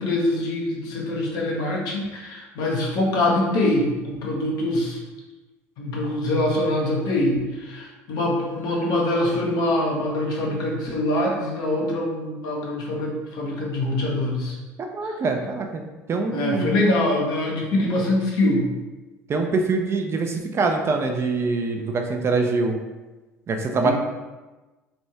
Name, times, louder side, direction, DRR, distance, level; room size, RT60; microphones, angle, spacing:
voice 1, 0.0-5.0 5.8-14.6 16.3-18.7 23.8-23.9, left 1 dB, 55° left, -2 dB, 0.8 m, -24 dB
voice 2, 14.8-15.8 16.1-16.7 19.3-22.8 23.5-23.9, right 3 dB, 35° right, 3 dB, 0.4 m, -24 dB
3.2 x 2.5 x 2.8 m, 1.2 s
hypercardioid pair, 65°, 8 cm